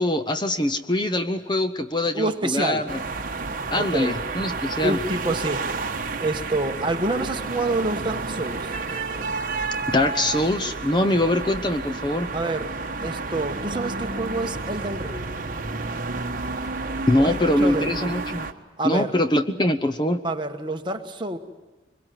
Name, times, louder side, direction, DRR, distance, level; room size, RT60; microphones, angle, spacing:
voice 1, 0.0-3.0 3.7-5.0 9.9-12.3 17.1-18.5 18.8-20.2, left 1 dB, 25° left, 9 dB, 0.8 m, -23 dB
voice 2, 2.1-2.8 3.8-4.1 4.8-5.6 6.2-8.7 12.3-12.7 13.0-15.3 17.2-17.9 18.8-19.1 20.2-21.4, right 2 dB, 25° right, 5 dB, 1.3 m, -27 dB
sound 1, 2.8-18.1, equal, 65° left, 3.0 m, -52 dB
sound 2, 2.9-18.5, right 3 dB, 45° right, 1.2 m, -30 dB
24.5 x 22.0 x 9.2 m, 1.2 s
head